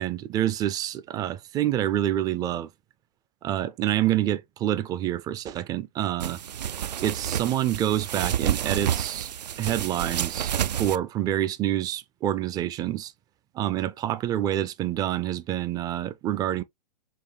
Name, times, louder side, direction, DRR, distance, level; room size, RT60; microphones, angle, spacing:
voice 1, 0.0-2.7 3.4-6.4 7.0-9.3 9.6-10.5 10.8-13.1 13.5-16.6, right 12 dB, 20° right, 0.4 m, -27 dB
sound 1, 6.2-11.0, right 9 dB, 80° right, 0.4 m, -29 dB
5.7 x 2.1 x 3.3 m
hypercardioid pair, 120°, 21 cm